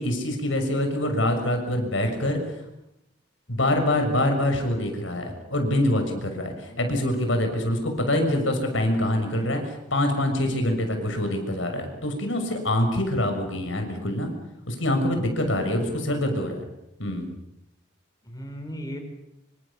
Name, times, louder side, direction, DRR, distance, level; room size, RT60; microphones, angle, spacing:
voice 1, 0.0-2.4 3.5-14.3 14.7-16.6 17.0-17.3, left 1 dB, 75° left, 5 dB, 6.5 m, -25 dB
voice 2, 15.8-16.1 18.2-19.0, equal, 20° left, 3 dB, 5.1 m, -37 dB
27.5 x 26.0 x 7.2 m, 0.84 s
head